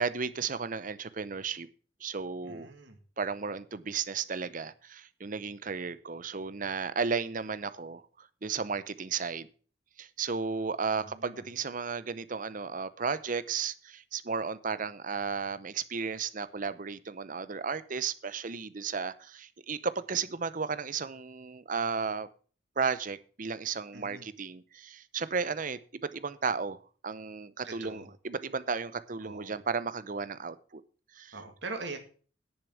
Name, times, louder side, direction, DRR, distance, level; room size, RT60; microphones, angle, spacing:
voice 1, 0.0-1.7 2.0-2.7 3.2-9.5 10.0-22.3 22.8-26.8 27.0-30.8 31.1-31.4, right 5 dB, 40° right, 0.7 m, -34 dB
voice 2, 2.4-3.0 11.0-11.5 23.9-24.3 27.6-28.1 29.2-29.6 31.3-32.0, right 3 dB, 60° right, 2.3 m, -42 dB
10.5 x 6.8 x 7.1 m
head